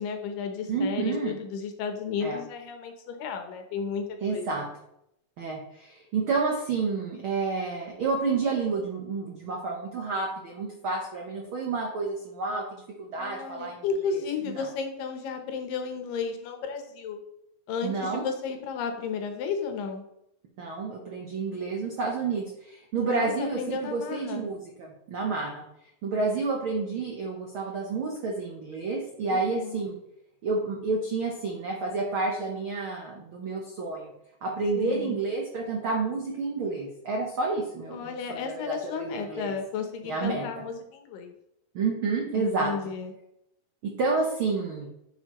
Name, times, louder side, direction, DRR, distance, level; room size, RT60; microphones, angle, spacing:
voice 1, 0.0-4.5 13.2-17.2 17.7-20.0 23.1-24.5 29.3-29.8 34.7-35.2 37.9-41.3 42.4-43.1, left 5 dB, 80° left, 5 dB, 2.6 m, -33 dB
voice 2, 0.7-1.4 2.2-2.4 4.2-4.7 5.4-13.8 14.4-14.7 17.8-18.2 20.6-25.6 26.0-30.0 30.4-34.1 34.4-39.5 40.1-40.6 41.7-42.9 43.8-44.9, right 4 dB, 80° right, 0 dB, 1.1 m, -30 dB
10.5 x 6.4 x 3.0 m, 0.79 s
omnidirectional pair, 3.9 m